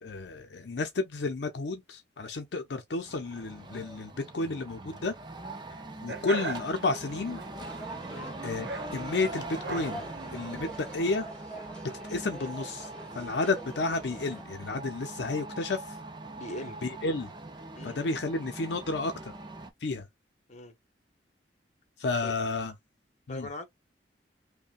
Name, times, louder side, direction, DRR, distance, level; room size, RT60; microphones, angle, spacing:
voice 1, 0.0-5.1 6.0-7.4 8.4-10.0 10.3-11.3 12.1-16.0 16.8-17.3 17.8-19.3 19.8-20.1 22.0-22.7 23.3-23.5, left 3 dB, 75° left, 0.6 m, -31 dB
sound 1, 3.1-19.7, right 2 dB, 25° right, 0.5 m, -42 dB
sound 2, 6.1-11.1, right 3 dB, 65° right, 0.9 m, -40 dB
sound 3, 7.6-14.4, right 1 dB, 5° left, 1.9 m, -46 dB
voice 2, 16.4-16.8 17.7-18.0 20.5-20.7 22.2-22.3 23.3-23.6, left 1 dB, 40° left, 0.9 m, -40 dB
5.4 x 2.2 x 2.4 m
head